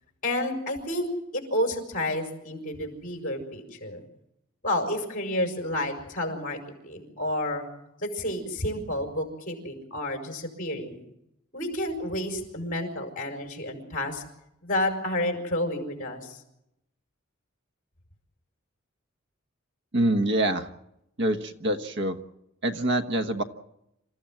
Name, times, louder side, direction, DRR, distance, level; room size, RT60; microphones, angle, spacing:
voice 1, 0.2-4.0 4.6-7.7 8.0-11.0 11.5-14.2 14.6-16.4, left 1 dB, 40° left, 4 dB, 5.3 m, -30 dB
voice 2, 19.9-20.7 21.2-22.2 22.6-23.4, right 1 dB, 55° right, 8 dB, 1.3 m, -25 dB
27.5 x 15.5 x 7.6 m, 0.83 s
head